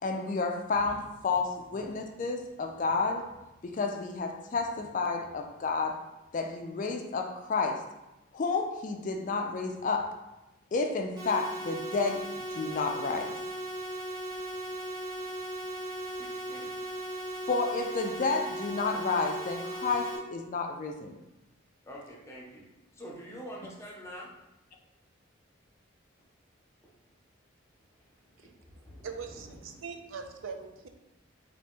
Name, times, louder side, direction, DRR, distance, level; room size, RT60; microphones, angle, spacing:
voice 1, 0.0-3.2 3.6-6.0 6.3-7.8 8.3-10.1 10.7-13.3 17.5-21.2, left 4 dB, 40° left, 4 dB, 0.3 m, -31 dB
voice 2, 1.8-2.1 2.5-2.6 16.1-16.7 21.8-24.3 28.0-29.9, equal, 15° left, -3 dB, 0.7 m, -47 dB
sound 1, 11.2-20.2, right 1 dB, 20° right, 0.9 m, -37 dB
voice 3, 29.0-30.9, right 5 dB, 80° right, 5 dB, 0.5 m, -41 dB
4.0 x 2.8 x 3.6 m, 0.98 s
head